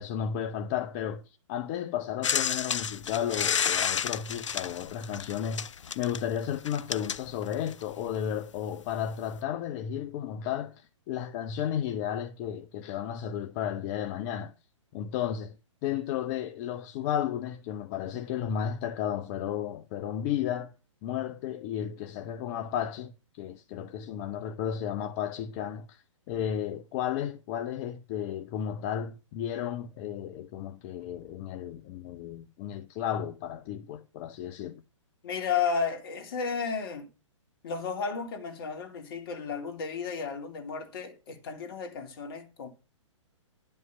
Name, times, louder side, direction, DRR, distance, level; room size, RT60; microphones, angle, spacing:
voice 1, 0.0-14.5 14.9-15.6 15.8-20.7 21.0-23.1 23.4-34.8, left 9 dB, 30° left, 0.7 m, -33 dB
sound 1, 2.2-7.9 8.9-9.0, left 7 dB, 70° left, 0.6 m, -31 dB
voice 2, 35.2-37.1 37.6-42.7, left 6 dB, 50° left, 2.5 m, -33 dB
11.0 x 5.5 x 6.1 m
figure-of-eight pair, 125°, 16 cm